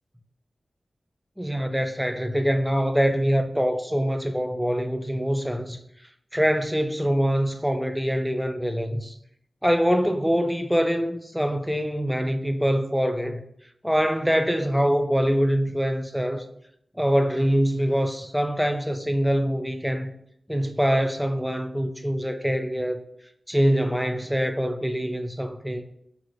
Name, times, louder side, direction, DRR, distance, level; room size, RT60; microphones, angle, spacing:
voice 1, 1.4-5.8 6.3-9.1 9.6-13.4 13.8-16.4 17.0-20.1 20.5-23.0 23.5-25.8, equal, ahead, 0.3 m, -24 dB
3.9 x 2.9 x 3.0 m
wide cardioid pair, 95°, 0 cm